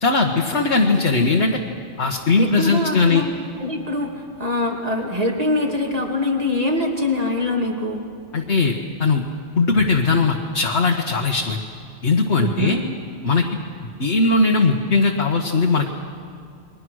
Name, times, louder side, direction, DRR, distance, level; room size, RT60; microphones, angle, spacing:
voice 1, 0.0-1.6 2.0-3.2 8.3-8.7 9.0-9.2 9.5-11.6 12.0-12.8 13.2-13.5 14.0-16.0, left 3 dB, 55° left, 0 dB, 1.7 m, -19 dB
voice 2, 2.4-3.3 3.6-8.0 12.4-12.8, left 2 dB, 30° right, 1 dB, 2.8 m, -23 dB
29.5 x 22.0 x 6.4 m, 2.3 s
omnidirectional pair, 1.4 m